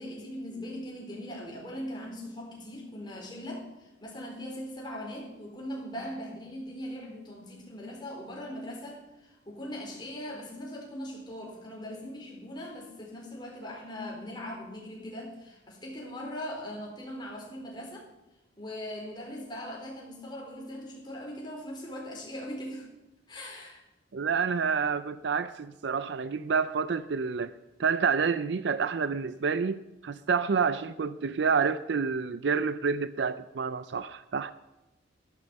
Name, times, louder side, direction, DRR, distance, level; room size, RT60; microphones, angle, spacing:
voice 1, 0.0-18.1 18.6-22.9 23.3-23.8, equal, 25° left, -2 dB, 4.0 m, -40 dB
voice 2, 24.1-27.5 27.8-34.5, right 5 dB, 65° right, 14 dB, 0.4 m, -28 dB
13.0 x 12.0 x 5.3 m, 1.0 s
head